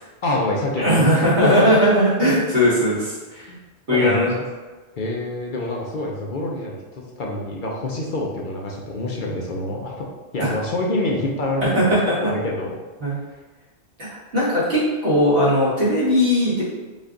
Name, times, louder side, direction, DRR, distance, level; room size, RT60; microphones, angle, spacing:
voice 1, 0.2-1.8 2.2-2.4 3.5-3.6 3.9-4.2 5.0-10.1 10.3-11.9 12.2-12.7 13.1-13.4, left 1 dB, 55° left, -2 dB, 0.7 m, -26 dB
voice 2, 0.8-3.5 3.9-4.3 10.4-10.5 11.8-12.3 13.0-13.2 14.0-14.1 14.3-16.6, equal, 75° right, -8 dB, 2.0 m, -18 dB
5.2 x 2.4 x 3.7 m, 1.3 s
omnidirectional pair, 1.1 m